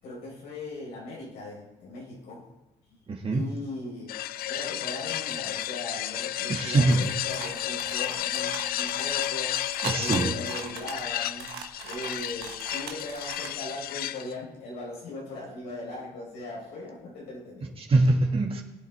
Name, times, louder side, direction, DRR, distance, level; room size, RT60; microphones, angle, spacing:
voice 1, 0.0-2.5 3.3-9.6 9.9-11.5 11.8-17.8, left 2 dB, 85° left, -5 dB, 4.5 m, -39 dB
voice 2, 3.1-3.4 6.5-7.1 9.8-10.3 17.8-18.6, right 2 dB, 35° right, 0 dB, 2.0 m, -23 dB
sound 1, 4.1-14.3, left 13 dB, 60° left, 0.4 m, -32 dB
sound 2, 6.9-13.6, right 8 dB, 70° right, 1.3 m, -41 dB
23.0 x 8.1 x 3.5 m, 1.0 s
cardioid pair, 110°, 17 cm